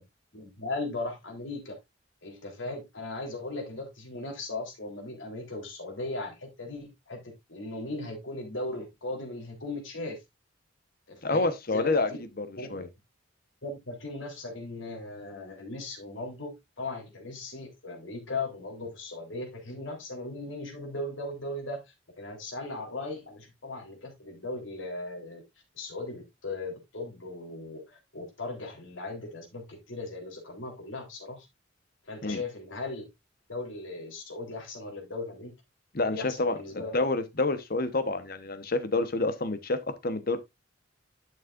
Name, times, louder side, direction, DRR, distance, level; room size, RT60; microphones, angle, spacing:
voice 1, 0.3-1.8 2.2-10.2 11.1-12.2 12.6-12.7 13.6-21.8 22.2-25.4 25.7-31.5 32.1-33.1 33.5-35.5 36.1-37.0, left 2 dB, 75° left, 3.6 m, -38 dB
voice 2, 11.2-12.1 12.4-12.9 32.2-32.4 35.9-40.4, left 2 dB, 50° left, 1.1 m, -28 dB
11.5 x 6.4 x 2.5 m
head